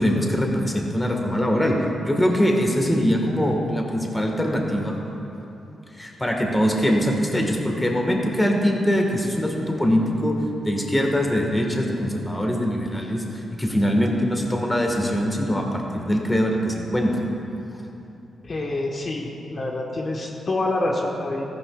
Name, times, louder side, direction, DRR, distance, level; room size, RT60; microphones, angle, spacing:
voice 1, 0.0-1.7 2.0-4.9 6.0-10.3 10.6-13.2 13.6-17.1, equal, 15° left, 0 dB, 1.6 m, -22 dB
voice 2, 18.4-21.4, left 2 dB, 50° left, -1 dB, 1.2 m, -27 dB
14.5 x 11.0 x 2.4 m, 2.9 s
cardioid pair, 75°, 0 cm